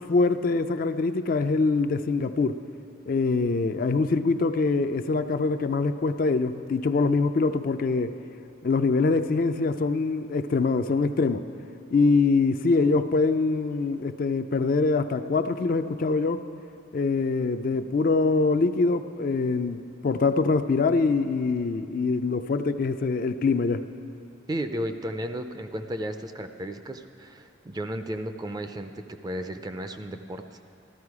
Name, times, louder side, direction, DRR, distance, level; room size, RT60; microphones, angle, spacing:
voice 1, 0.1-2.6 3.1-8.2 8.6-11.4 11.9-16.4 16.9-23.8, left 3 dB, 45° left, 9 dB, 0.4 m, -24 dB
voice 2, 24.5-30.6, right 1 dB, 20° right, 8 dB, 0.4 m, -34 dB
14.0 x 13.0 x 4.8 m, 2.8 s
head